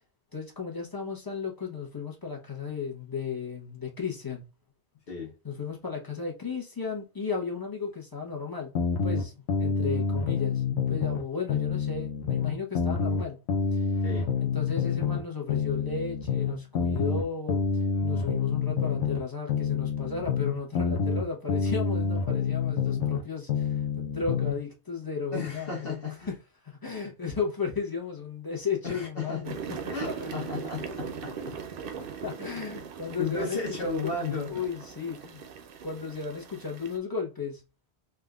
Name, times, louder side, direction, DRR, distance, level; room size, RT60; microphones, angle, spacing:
voice 1, 0.3-4.5 5.4-8.7 9.0-13.4 13.7-13.9 14.4-17.6 18.0-25.9 26.3-26.4 26.6-29.6 29.8-30.3 32.0-34.1 34.5-35.4 35.8-37.6, left 5 dB, 20° left, 0.8 m, -34 dB
sound 1, 8.7-11.2 11.5-15.2 15.5-19.2 19.5-23.2 23.5-24.6, left 5 dB, 90° left, 0.9 m, -27 dB
voice 2, 14.0-14.3 25.3-26.3 28.8-29.4 29.9-31.6 33.2-34.6, left 4 dB, 65° left, 1.2 m, -34 dB
sound 2, 29.4-37.0, right 6 dB, 65° right, 0.7 m, -40 dB
3.5 x 2.5 x 2.3 m
omnidirectional pair, 1.1 m